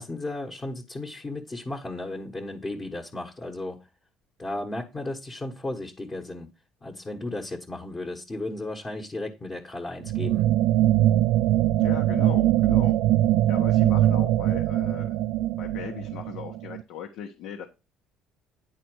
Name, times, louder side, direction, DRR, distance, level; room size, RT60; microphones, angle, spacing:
voice 1, 0.0-3.8 4.4-6.5 6.8-10.5, left 2 dB, 15° left, 1.3 m, -34 dB
sound 1, 10.0-16.8, right 13 dB, 80° right, 0.4 m, -22 dB
voice 2, 11.8-13.0 13.5-15.2 15.6-17.7, left 8 dB, 70° left, 1.2 m, -38 dB
10.0 x 4.2 x 6.2 m
cardioid pair, 145°, 0 cm